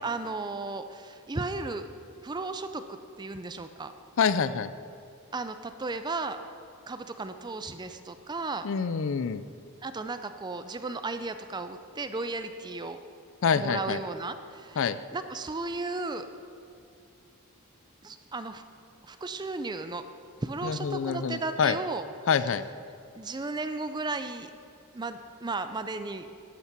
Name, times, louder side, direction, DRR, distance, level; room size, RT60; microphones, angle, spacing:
voice 1, 0.0-1.9 2.2-3.9 5.3-6.4 6.9-8.7 9.8-13.0 13.5-14.8 15.1-16.3 18.0-18.6 19.0-20.0 20.4-22.0 23.1-24.5 24.9-26.3, right 3 dB, 20° right, 9 dB, 0.4 m, -35 dB
voice 2, 4.2-4.7 8.6-9.4 13.4-14.0 14.8-15.0 20.6-21.8 22.3-22.6, left 6 dB, 60° left, 14 dB, 0.4 m, -26 dB
12.0 x 8.4 x 6.0 m, 2.5 s
head